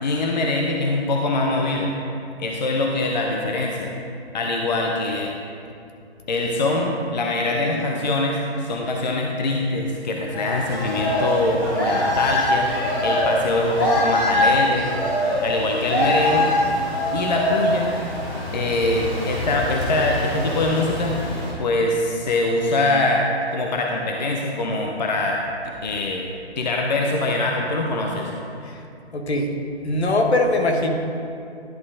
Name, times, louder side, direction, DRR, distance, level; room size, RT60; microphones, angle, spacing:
voice 1, 0.0-1.9 2.4-3.9 4.3-5.3 6.3-12.7 13.0-14.9 15.4-16.5 17.1-17.9 18.5-21.1 21.6-23.3 23.5-25.4 25.8-26.2 26.6-28.3, left 2 dB, 45° left, 0 dB, 0.6 m, -23 dB
sound 1, 10.3-21.5, left 1 dB, 20° left, 1.3 m, -23 dB
voice 2, 29.1-29.5 29.8-30.9, left 2 dB, 75° left, 3 dB, 1.1 m, -21 dB
11.0 x 4.3 x 3.7 m, 2.5 s
hypercardioid pair, 170°, 33 cm